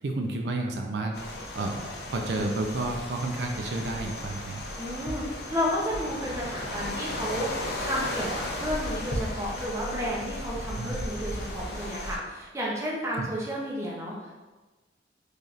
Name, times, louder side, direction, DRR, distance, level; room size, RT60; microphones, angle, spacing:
voice 1, 0.0-1.2 1.5-1.8 2.1-4.6 10.7-11.0 13.1-13.3, right 2 dB, 75° right, 2 dB, 0.3 m, -31 dB
sound 1, 1.1-12.2, left 1 dB, 65° left, 0.6 m, -35 dB
voice 2, 4.8-7.5 7.8-14.2, equal, 15° right, -5 dB, 0.5 m, -32 dB
3.3 x 2.6 x 2.4 m, 1.2 s
head